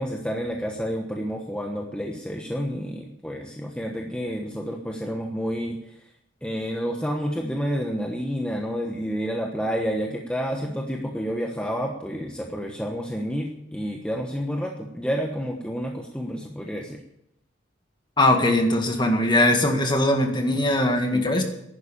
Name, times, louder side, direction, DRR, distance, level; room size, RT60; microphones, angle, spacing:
voice 1, 0.0-5.9 6.4-17.0 21.1-21.3, equal, 5° left, 1 dB, 1.2 m, -29 dB
voice 2, 18.2-21.4, left 1 dB, 25° left, 4 dB, 2.0 m, -20 dB
11.5 x 9.8 x 8.7 m, 0.79 s
head